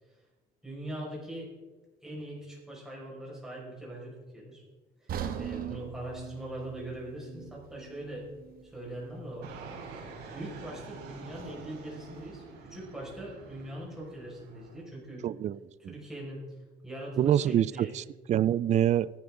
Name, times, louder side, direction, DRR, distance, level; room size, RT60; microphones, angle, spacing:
voice 1, 0.6-1.5 2.0-4.6 5.0-5.1 5.4-8.3 8.6-9.5 10.3-15.3 15.8-16.5 16.8-17.9, right 1 dB, 5° right, 5.7 m, -41 dB
sound 1, 5.1-9.2 9.5-9.7 10.3-10.4, right 9 dB, 60° right, 1.3 m, -40 dB
Fixed-wing aircraft airplane, 9.4-14.8, right 4 dB, 85° right, 4.0 m, -46 dB
voice 2, 15.2-15.6 17.2-19.1, right 11 dB, 45° right, 0.4 m, -25 dB
18.5 x 12.0 x 3.8 m
cardioid pair, 110°, 17 cm